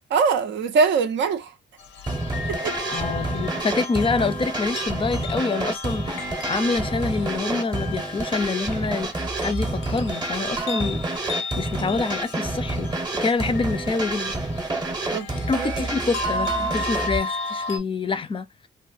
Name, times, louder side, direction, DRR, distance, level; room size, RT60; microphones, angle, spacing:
voice 1, 0.1-1.5 2.5-2.8 15.1-15.9, right 5 dB, 80° right, 0.5 m, -23 dB
sound 1, 1.8-17.8, left 3 dB, 90° left, 0.5 m, -35 dB
sound 2, 2.1-17.2, right 2 dB, 20° right, 0.7 m, -28 dB
voice 2, 2.9-14.3 15.5-18.5, left 4 dB, 30° left, 0.4 m, -26 dB
2.4 x 2.1 x 2.5 m
cardioid pair, 75°, 19 cm